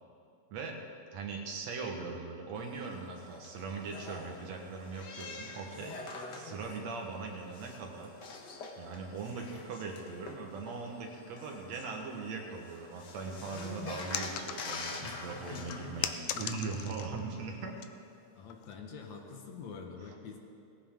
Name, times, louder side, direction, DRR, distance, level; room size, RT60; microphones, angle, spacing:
voice 1, 1.1-6.0 6.3-8.1 8.8-17.8, right 4 dB, 65° right, 1 dB, 2.4 m, -40 dB
sound 1, 2.5-16.1, left 3 dB, 55° left, 1.3 m, -46 dB
sound 2, 14.1-15.2 15.7-17.2 17.5-17.9 18.5-18.7, left 10 dB, 90° left, 2.1 m, -38 dB
voice 2, 15.0-16.0 18.4-20.4, left 5 dB, 70° left, 3 dB, 2.5 m, -46 dB
18.5 x 15.0 x 3.7 m, 2.4 s
omnidirectional pair, 3.4 m